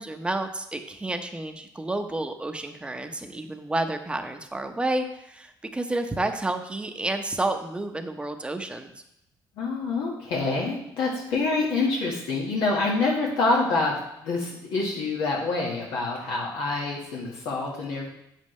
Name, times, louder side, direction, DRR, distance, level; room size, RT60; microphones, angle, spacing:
voice 1, 0.0-9.0, right 2 dB, 15° right, 6 dB, 0.8 m, -30 dB
voice 2, 9.6-18.1, left 3 dB, 85° left, -3 dB, 1.6 m, -26 dB
8.2 x 7.3 x 3.2 m, 0.79 s
cardioid pair, 105°, 8 cm